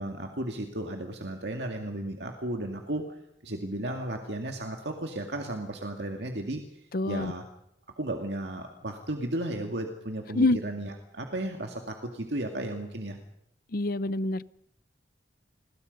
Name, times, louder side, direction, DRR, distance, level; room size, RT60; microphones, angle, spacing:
voice 1, 0.0-7.4 8.0-13.2, right 1 dB, 70° right, 3 dB, 2.2 m, -34 dB
voice 2, 6.9-7.3 10.3-10.6 13.7-14.4, left 2 dB, 55° left, 17 dB, 0.8 m, -26 dB
29.0 x 21.5 x 5.4 m, 0.78 s
head